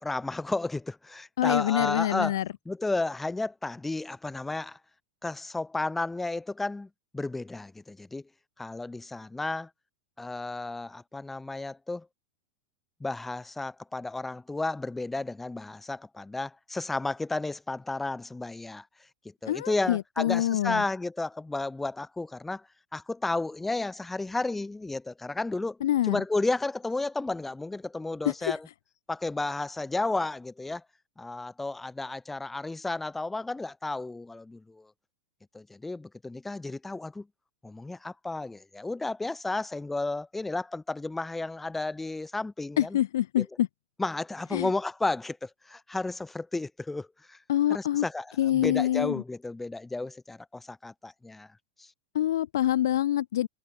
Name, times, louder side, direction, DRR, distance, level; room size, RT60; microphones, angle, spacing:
voice 1, 0.0-2.4 2.7-4.8 5.2-8.2 8.6-9.7 10.2-12.1 13.0-18.9 19.4-22.7 22.9-25.8 26.1-28.7 29.1-30.8 31.2-34.9 35.5-37.3 37.6-43.0 43.4-43.5 44.0-47.4 47.7-48.3 48.5-51.5 51.8-51.9, left 2 dB, 10° left, 3.9 m, -32 dB
voice 2, 1.4-2.4 19.5-20.8 25.8-26.2 28.2-28.6 42.8-43.7 44.5-44.7 47.5-48.0 48.4-49.2 52.1-53.5, left 12 dB, 65° left, 1.2 m, -26 dB
figure-of-eight pair, 90°, 2 cm